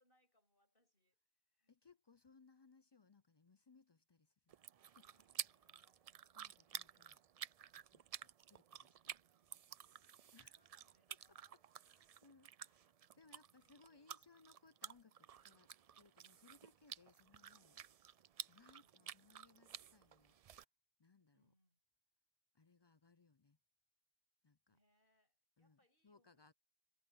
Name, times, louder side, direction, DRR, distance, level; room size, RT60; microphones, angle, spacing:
voice 1, 0.0-1.7 5.0-6.2 10.3-11.7 12.1-12.3 13.1-14.1 18.5-19.2 21.3-21.8 24.7-26.5, equal, 55° left, 7.2 m, -81 dB
voice 2, 1.7-5.1 6.3-7.2 7.9-9.2 10.3-10.6 11.1-11.2 11.9-15.7 16.0-17.8 18.5-20.4 21.0-21.5 22.5-23.6 24.4-24.8 25.6-26.5, left 4 dB, 35° left, 0.4 m, -68 dB
sound 1, 4.5-20.6, right 9 dB, 60° right, 0.4 m, -53 dB
omnidirectional pair, 1.1 m